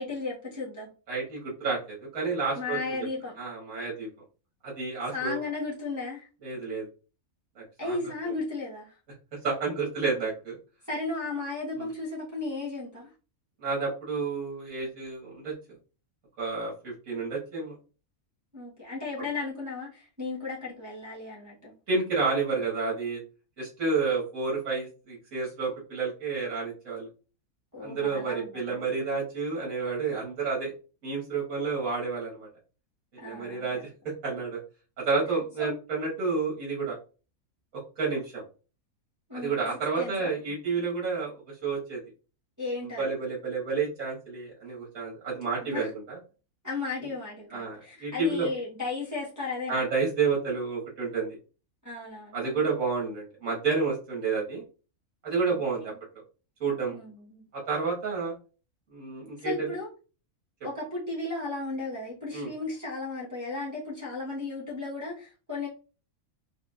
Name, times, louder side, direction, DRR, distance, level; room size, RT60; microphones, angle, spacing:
voice 1, 0.0-0.9 2.5-3.3 5.1-6.3 7.8-8.9 10.9-13.1 18.5-21.7 27.7-28.8 33.2-33.7 35.6-35.8 39.3-39.6 40.0-40.3 42.6-43.1 45.6-45.9 46.6-49.8 51.8-52.6 55.8-56.0 56.9-57.5 59.4-59.9 60.6-65.7, left 3 dB, 15° right, -7 dB, 1.1 m, -35 dB
voice 2, 1.1-2.8 3.4-4.1 4.6-5.4 6.4-6.9 7.6-8.0 9.4-10.6 11.8-11.9 13.6-15.5 16.4-17.8 21.9-23.2 23.6-27.1 27.8-30.7 31.0-32.5 33.1-33.9 34.2-34.6 35.0-37.0 37.7-38.4 39.3-42.0 42.8-46.2 47.0-47.1 47.5-48.5 49.7-51.4 52.3-54.6 55.2-55.9 56.6-57.0 57.5-58.3 58.9-59.7 62.3-62.5, right 4 dB, 70° right, -4 dB, 1.8 m, -30 dB
4.9 x 2.7 x 2.4 m, 0.35 s
omnidirectional pair, 1.5 m